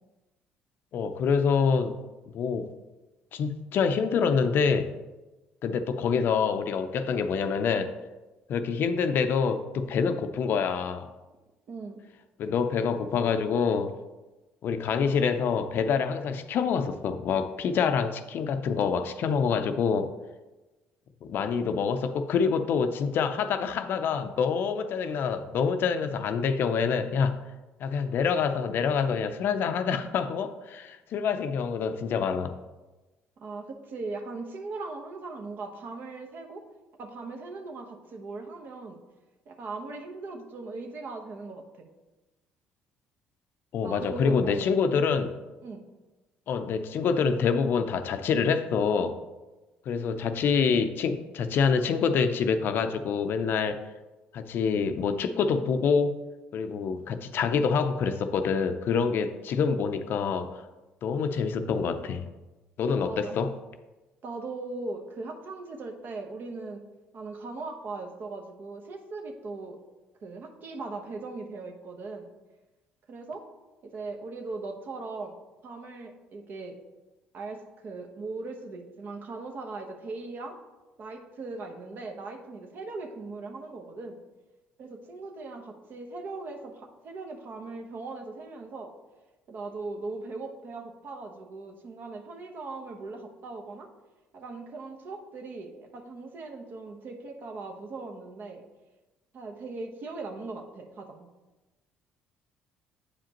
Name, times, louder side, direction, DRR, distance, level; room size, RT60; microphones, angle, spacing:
voice 1, 0.9-1.9 2.3-2.7 3.3-4.9 5.6-7.9 8.5-11.1 12.4-13.9 14.6-20.1 21.2-27.4 27.8-32.6 43.7-45.4 46.5-49.2 49.9-53.8 54.3-56.2 56.5-60.6 61.0-62.3 62.8-63.5, left 6 dB, 60° left, 9 dB, 0.5 m, -26 dB
voice 2, 11.7-12.0 33.4-36.6 37.0-39.0 39.5-41.9 43.8-44.9 45.6-45.8 62.9-63.5 64.2-66.8 67.1-69.8 70.2-72.3 73.1-73.4 73.8-75.4 75.6-76.8 77.3-80.6 81.0-84.2 84.8-88.9 89.5-93.9 94.3-98.6 99.3-101.3, right 3 dB, 55° right, 3 dB, 1.0 m, -39 dB
8.4 x 5.0 x 2.9 m, 1.1 s
supercardioid pair, 85°, 4 cm